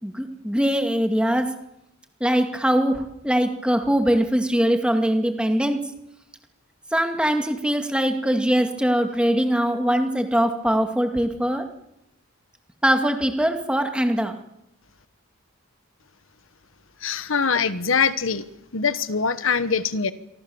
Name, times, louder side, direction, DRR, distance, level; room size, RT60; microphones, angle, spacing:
voice 1, 0.0-1.6 2.2-5.8 6.9-11.7 12.8-14.4, equal, 5° right, 5 dB, 2.1 m, -22 dB
voice 2, 17.0-18.4 18.7-20.1, left 5 dB, 75° left, 13 dB, 1.3 m, -23 dB
27.5 x 24.0 x 7.1 m, 0.89 s
head